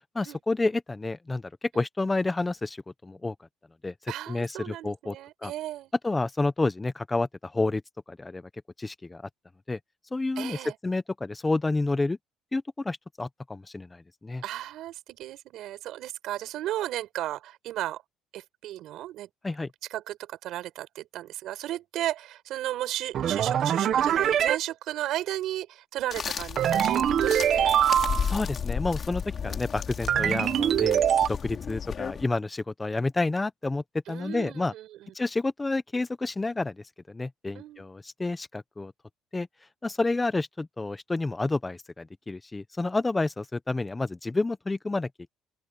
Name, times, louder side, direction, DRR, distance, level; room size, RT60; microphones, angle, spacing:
voice 1, 0.1-3.3 3.8-3.9 4.3-5.2 5.4-5.5 6.0-7.8 8.1-8.4 8.8-9.2 9.7-9.8 10.1-10.6 10.8-12.2 12.5-14.4 19.4-19.7 28.3-33.8 34.1-34.7 35.1-38.9 39.3-39.5 39.8-45.3, left 2 dB, 15° left, 1.0 m, -29 dB
voice 2, 4.1-5.9 10.4-10.7 14.4-18.0 18.3-19.3 19.9-27.7 29.4-29.6 30.3-30.4 34.1-35.1 37.5-37.9, right 13 dB, 65° right, 4.9 m, -35 dB
sound 1, 23.1-24.6 26.6-28.3 30.1-31.3, right 9 dB, 50° right, 1.3 m, -23 dB
sound 2, 26.1-32.3, left 7 dB, 40° left, 3.5 m, -33 dB
open air
cardioid pair, 120°, 0 cm